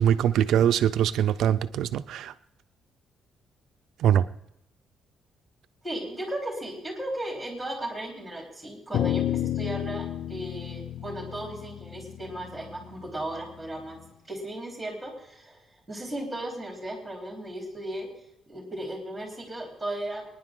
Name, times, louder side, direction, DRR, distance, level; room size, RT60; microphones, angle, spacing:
voice 1, 0.0-2.3 4.0-4.2, right 10 dB, 75° right, 12 dB, 0.6 m, -22 dB
voice 2, 5.8-14.0 14.3-15.6 15.9-18.1 18.5-20.2, right 1 dB, 5° right, 0 dB, 4.1 m, -36 dB
sound 1, 8.9-13.5, left 11 dB, 60° left, 0.4 m, -31 dB
23.5 x 10.5 x 3.8 m, 0.84 s
cardioid pair, 155°, 0 cm